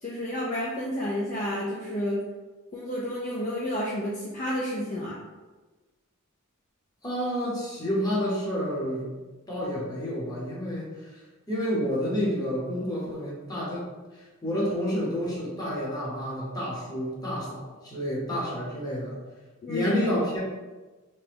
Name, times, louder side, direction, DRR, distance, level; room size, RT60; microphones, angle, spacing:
voice 1, 0.0-2.2 2.7-5.2 19.6-19.9, equal, 35° left, -5 dB, 0.4 m, -30 dB
voice 2, 7.0-9.1 9.5-11.2 11.5-13.9 14.1-19.2 19.7-20.4, equal, 20° left, -6 dB, 0.8 m, -29 dB
2.9 x 2.2 x 3.3 m, 1.2 s
head